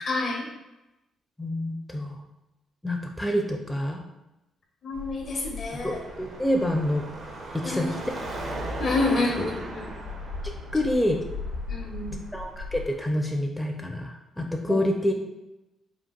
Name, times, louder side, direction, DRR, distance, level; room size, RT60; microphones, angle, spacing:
voice 1, 0.1-0.5 4.8-6.0 7.6-8.0 8.8-9.9 11.7-12.2 14.6-14.8, left 2 dB, 60° left, -1 dB, 0.8 m, -28 dB
voice 2, 1.4-2.2 2.8-4.0 5.8-7.1 7.5-7.9 10.7-11.2 12.3-15.1, left 1 dB, 10° left, 1 dB, 0.5 m, -27 dB
sound 1, 4.9-12.9, left 3 dB, 90° left, 0.6 m, -40 dB
Car passing by / Traffic noise roadway noise / Engine, 5.7-13.0, right 2 dB, 60° right, 0.6 m, -38 dB
3.9 x 2.3 x 2.2 m, 0.96 s
hypercardioid pair, 45°, 0 cm